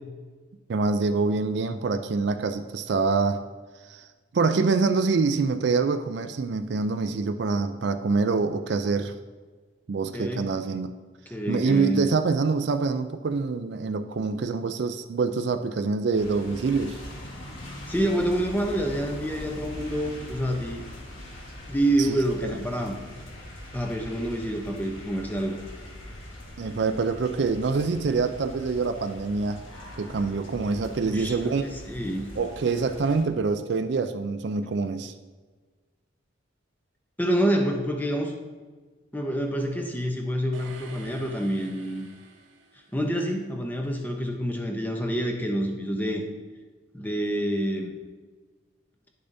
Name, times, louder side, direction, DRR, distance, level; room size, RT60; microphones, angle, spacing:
voice 1, 0.7-3.4 3.9-4.0 4.3-9.1 9.9-10.9 11.5-17.0 22.1-22.5 26.6-29.6 30.0-31.6 32.4-35.1, right 4 dB, 60° right, 9 dB, 0.4 m, -25 dB
voice 2, 10.1-10.4 11.3-12.0 17.9-20.8 21.7-23.0 23.7-25.6 31.0-32.3 37.2-38.3 39.1-42.1 42.9-46.2 46.9-47.9, right 1 dB, 10° left, 2 dB, 0.7 m, -27 dB
sound 1, 16.1-33.2, left 1 dB, 75° left, 1.6 m, -42 dB
sound 2, 40.5-43.4, right 4 dB, 90° right, 1.1 m, -49 dB
10.0 x 6.7 x 2.7 m, 1.4 s
head